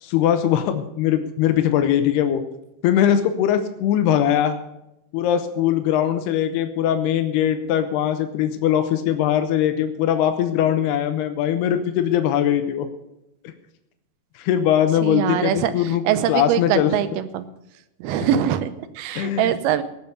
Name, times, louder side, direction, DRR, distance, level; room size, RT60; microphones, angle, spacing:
voice 1, 0.0-2.4 2.8-4.6 5.1-12.9 14.4-16.0 16.3-17.0 18.2-18.3 19.1-19.5, left 10 dB, 85° left, 8 dB, 2.9 m, -21 dB
voice 2, 15.0-17.4 18.0-19.8, right 10 dB, 80° right, 12 dB, 2.6 m, -23 dB
18.5 x 7.1 x 6.7 m, 0.88 s
omnidirectional pair, 4.5 m